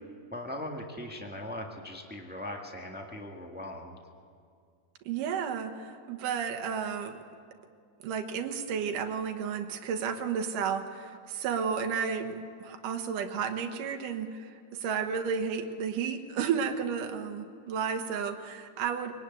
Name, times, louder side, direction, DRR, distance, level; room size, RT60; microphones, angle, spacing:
voice 1, 0.3-3.9, left 1 dB, 10° right, 1 dB, 0.5 m, -39 dB
voice 2, 5.1-7.2 8.0-12.3 12.6-14.5 14.8-19.1, right 6 dB, 85° right, 5 dB, 2.8 m, -32 dB
23.0 x 18.0 x 9.2 m, 2.2 s
omnidirectional pair, 3.7 m